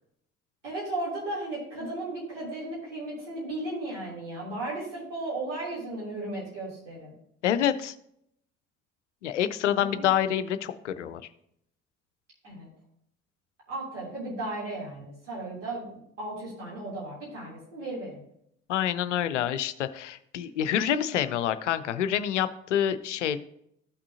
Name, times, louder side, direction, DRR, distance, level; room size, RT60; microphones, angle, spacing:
voice 1, 0.6-7.1 9.9-10.1 12.4-12.7 13.7-15.9 16.2-18.2, right 2 dB, 85° right, -7 dB, 3.2 m, -35 dB
voice 2, 7.4-7.9 9.2-11.2 18.7-23.4, left 10 dB, 85° left, 13 dB, 0.5 m, -27 dB
14.0 x 6.0 x 2.7 m, 0.73 s
figure-of-eight pair, 50°, 35 cm